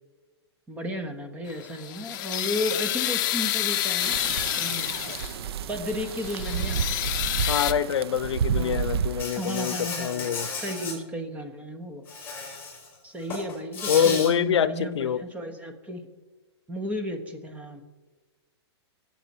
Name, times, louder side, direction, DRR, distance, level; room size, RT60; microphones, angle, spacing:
voice 1, 0.7-5.1 5.7-6.8 8.5-8.8 9.3-12.0 13.0-16.1 16.7-17.8, left 1 dB, 10° right, 6 dB, 1.1 m, -34 dB
sound 1, 1.5-5.5 5.9-7.7, left 13 dB, 45° left, 0.7 m, -29 dB
sound 2, 4.0-9.2, right 7 dB, 65° right, 0.6 m, -30 dB
voice 2, 7.5-10.5 13.9-15.2, left 8 dB, 80° left, 16 dB, 0.6 m, -25 dB
Insect, 9.2-11.0 12.1-12.9 13.2-14.3, left 4 dB, 15° left, 4.4 m, -34 dB
19.5 x 7.6 x 4.3 m, 1.3 s
hypercardioid pair, 150°, 14 cm